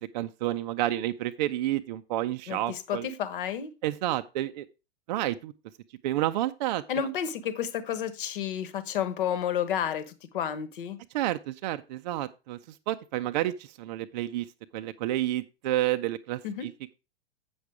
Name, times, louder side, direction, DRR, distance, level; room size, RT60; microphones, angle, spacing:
voice 1, 0.1-3.1 3.8-4.7 5.1-5.5 6.0-7.1 11.1-12.6 12.9-14.5 14.7-16.7, right 14 dB, 45° right, 0.5 m, -30 dB
voice 2, 2.5-3.7 6.9-11.0 16.4-16.7, left 8 dB, 55° left, 1.2 m, -31 dB
8.0 x 7.0 x 4.7 m
figure-of-eight pair, 100°, 32 cm